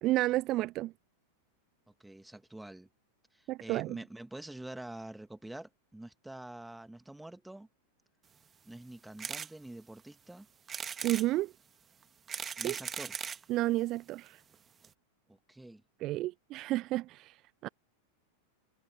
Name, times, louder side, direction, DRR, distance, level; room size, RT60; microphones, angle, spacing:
voice 1, 0.0-0.9 3.5-4.0 11.0-11.5 12.6-12.7 13.5-14.4 16.0-17.3 17.6-17.7, right 17 dB, 35° right, 0.6 m, -31 dB
voice 2, 2.0-2.9 3.3-7.7 8.6-10.5 12.6-13.2 15.3-15.8, right 1 dB, 5° right, 2.3 m, -46 dB
sound 1, 9.2-9.5 10.0-10.1 10.7-11.3 12.0-13.4 14.3-14.4 14.5-14.6 14.8-14.9, right 7 dB, 20° right, 1.7 m, -39 dB
figure-of-eight pair, 90°, 0 cm